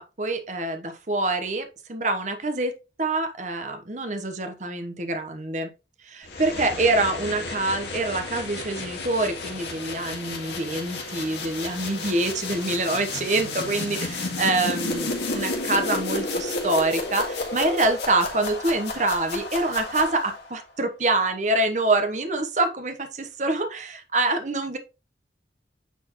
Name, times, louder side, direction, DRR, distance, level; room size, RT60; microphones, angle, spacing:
voice 1, 0.0-5.7 6.0-24.8, right 2 dB, 40° right, 1.1 m, -26 dB
sound 1, 6.2-20.5, left 3 dB, 75° left, 2.0 m, -32 dB
9.3 x 4.4 x 3.1 m
head